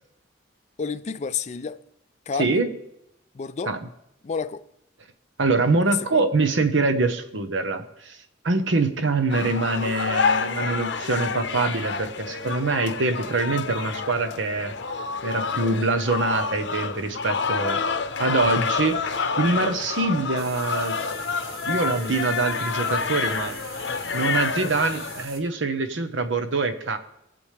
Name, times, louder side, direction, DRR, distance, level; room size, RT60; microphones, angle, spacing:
voice 1, 0.8-1.8 2.3-2.6 3.3-3.7 4.2-4.6 5.8-6.2, left 6 dB, 35° left, 0.4 m, -30 dB
voice 2, 2.4-2.7 3.7-3.8 5.4-8.2 8.4-14.7 15.2-17.8 18.2-21.1 21.7-23.5 24.1-27.0, right 3 dB, 75° right, 1.0 m, -24 dB
sound 1, 9.3-25.2, left 5 dB, 65° left, 0.7 m, -28 dB
sound 2, 20.4-25.4, right 4 dB, 55° right, 1.3 m, -43 dB
19.0 x 7.0 x 3.4 m
head